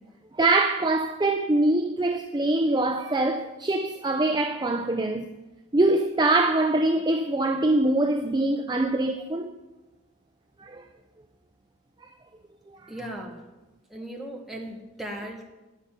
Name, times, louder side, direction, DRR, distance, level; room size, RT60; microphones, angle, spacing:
voice 1, 0.4-5.3 5.7-9.5 10.6-10.8, right 2 dB, 20° right, 0.4 m, -23 dB
voice 2, 12.9-13.4 13.9-15.5, right 1 dB, ahead, 1.6 m, -37 dB
12.5 x 5.7 x 9.1 m
head